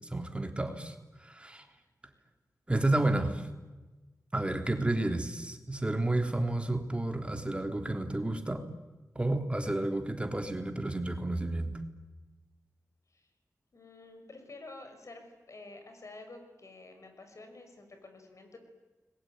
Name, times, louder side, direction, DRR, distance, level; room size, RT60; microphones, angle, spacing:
voice 1, 0.1-0.9 1.2-1.6 2.7-3.4 4.3-8.6 9.1-11.8, right 2 dB, 20° right, 6 dB, 3.3 m, -31 dB
voice 2, 13.7-18.6, left 2 dB, 60° left, 6 dB, 6.2 m, -50 dB
29.5 x 21.5 x 9.4 m, 1.2 s
wide cardioid pair, 65°, 6 cm